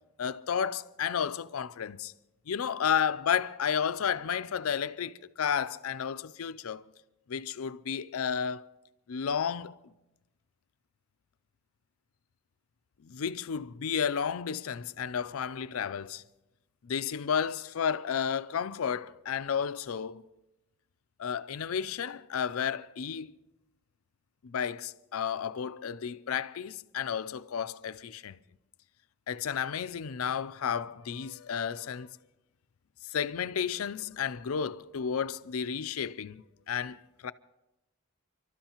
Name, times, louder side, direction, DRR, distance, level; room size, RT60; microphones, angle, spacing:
voice 1, 0.2-2.1 2.5-6.8 7.3-8.6 9.1-9.8 13.0-16.2 16.8-20.3 21.2-23.3 24.4-28.4 29.3-32.1 33.0-37.0 37.2-37.3, left 7 dB, 90° left, 0.5 m, -32 dB
29.5 x 13.0 x 3.0 m
head